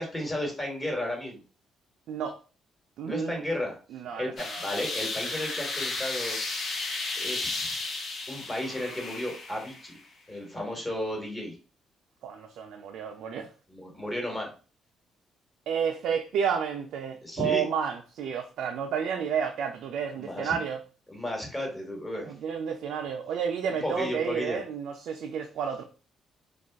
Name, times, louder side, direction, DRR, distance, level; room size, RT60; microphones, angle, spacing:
voice 1, 0.0-1.4 3.0-3.8 4.1-6.4 7.1-7.8 8.3-10.0 10.3-11.6 13.7-14.5 17.2-17.7 20.2-20.6 21.1-22.3 23.8-24.6, left 1 dB, 20° left, 1.2 m, -33 dB
voice 2, 2.1-2.4 3.0-3.4 3.9-4.7 12.2-13.5 15.7-20.8 22.2-25.8, right 7 dB, 80° right, 0.3 m, -31 dB
sound 1, 4.4-10.0, left 3 dB, 55° left, 0.7 m, -34 dB
2.3 x 2.2 x 3.4 m
cardioid pair, 90°, 0 cm